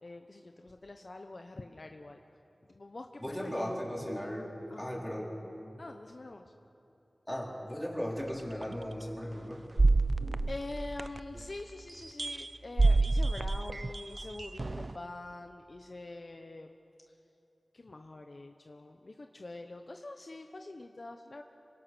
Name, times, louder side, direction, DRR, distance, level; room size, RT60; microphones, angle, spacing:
voice 1, 0.0-2.2 2.7-3.7 4.7-4.8 5.8-6.4 10.5-16.7 17.7-21.4, left 2 dB, 50° left, 5 dB, 1.0 m, -45 dB
voice 2, 3.2-5.3 7.3-9.6 10.0-10.5, equal, 10° left, -2 dB, 4.4 m, -37 dB
sound 1, 8.6-8.7 9.8-11.4 12.2-12.5 12.8-15.0, right 3 dB, 45° right, 0.5 m, -27 dB
27.5 x 24.5 x 6.2 m, 2.9 s
wide cardioid pair, 85°, 0 cm